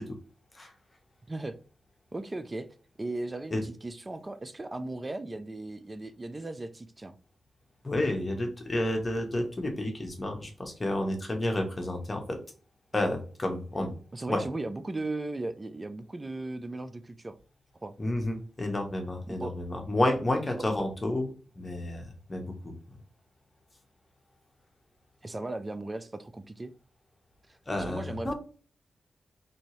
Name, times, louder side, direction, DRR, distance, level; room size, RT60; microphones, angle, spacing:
voice 1, 2.1-2.7 3.0-7.1 14.1-17.4 17.8-17.9 19.3-19.6 20.8-20.9 25.2-26.7 27.5-27.6 27.9-28.3, right 2 dB, 30° right, 10 dB, 0.4 m, -37 dB
voice 2, 7.8-12.2 12.9-13.9 14.3-14.4 18.0-21.3 21.5-22.7 27.7-28.3, left 1 dB, 35° left, 3 dB, 1.1 m, -30 dB
2.8 x 2.7 x 3.1 m, 0.39 s
supercardioid pair, 45°, 0 cm